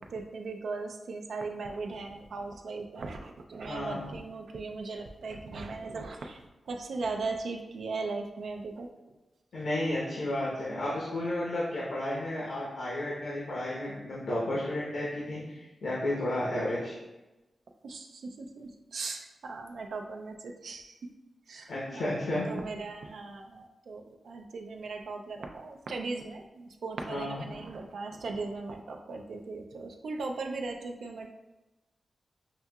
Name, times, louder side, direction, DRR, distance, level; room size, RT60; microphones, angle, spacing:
voice 1, 0.1-8.9 13.9-14.0 17.8-21.0 21.5-22.1 22.5-31.3, right 3 dB, 85° right, 3 dB, 0.3 m, -38 dB
voice 2, 3.6-4.1 9.5-16.9 21.7-22.5 27.1-27.4, left 1 dB, 85° left, -7 dB, 0.9 m, -32 dB
5.5 x 2.7 x 2.3 m, 1.1 s
wide cardioid pair, 100°, 0 cm